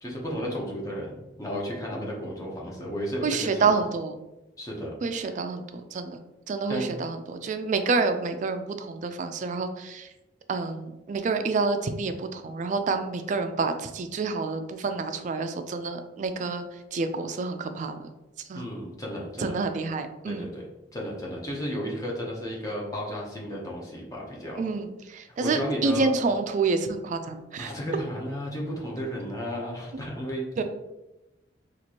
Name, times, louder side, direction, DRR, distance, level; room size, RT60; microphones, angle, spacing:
voice 1, 0.0-3.7 4.6-4.9 5.2-5.3 6.7-6.9 18.5-19.5 20.3-20.6 20.9-24.6 25.4-26.1 27.6-30.6, equal, 20° left, -3 dB, 0.8 m, -33 dB
voice 2, 3.2-4.2 5.0-6.2 6.5-10.1 10.5-16.6 16.9-18.1 18.5-18.7 19.4-20.5 24.6-27.7 30.6-30.7, right 4 dB, 45° right, 8 dB, 0.3 m, -28 dB
4.3 x 2.5 x 2.9 m, 1.0 s
head